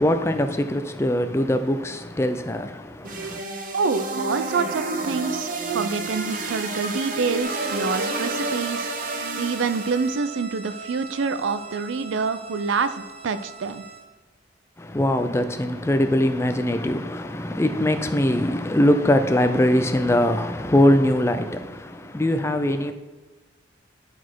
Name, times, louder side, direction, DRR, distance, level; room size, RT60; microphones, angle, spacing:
voice 1, 0.0-3.4 14.8-22.9, left 1 dB, 15° left, 0.3 m, -22 dB
sound 1, 3.0-10.1, right 2 dB, 45° right, 0.7 m, -30 dB
voice 2, 3.7-13.8, right 4 dB, 80° right, 0.4 m, -27 dB
sound 2, 7.4-14.0, right 5 dB, 60° right, 1.6 m, -38 dB
10.5 x 4.1 x 4.6 m
head